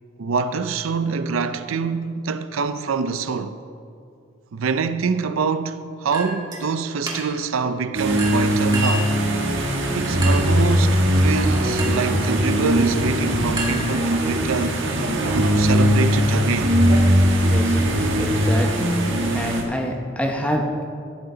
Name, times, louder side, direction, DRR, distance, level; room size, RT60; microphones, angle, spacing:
voice 1, 0.2-3.5 4.5-9.1 9.9-14.8 15.3-16.7, right 5 dB, 85° right, 0.5 m, -25 dB
Chink clink, 6.1-6.6 7.1-7.5 8.2-9.2 10.2-10.6 11.8-12.1 13.6-14.4, right 2 dB, 20° right, 1.5 m, -31 dB
sound 1, 7.9-19.6, equal, 65° right, 1.4 m, -20 dB
voice 2, 17.4-17.8 18.1-18.9 19.3-20.8, equal, 5° left, 0.9 m, -26 dB
15.0 x 7.8 x 3.8 m
head